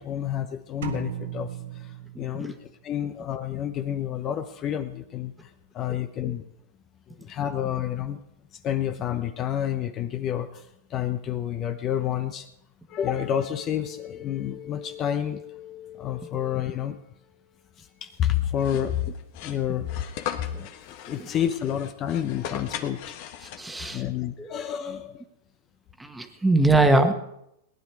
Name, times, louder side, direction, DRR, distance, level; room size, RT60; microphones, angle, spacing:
voice 1, 0.0-6.4 7.1-8.2 8.5-12.5 12.9-17.1 17.8-19.1 19.4-20.0 20.4-25.2, left 10 dB, 35° left, 9 dB, 0.8 m, -30 dB
sound 1, 0.8-2.8, right 8 dB, 80° right, 1.6 m, -36 dB
sound 2, 18.6-23.9, left 10 dB, 55° left, 1.4 m, -38 dB
voice 2, 23.6-24.0 24.4-24.5 24.8-25.0 26.0-27.1, right 2 dB, 5° right, 6 dB, 1.5 m, -22 dB
18.5 x 10.0 x 4.7 m, 0.81 s
hypercardioid pair, 125°, 0 cm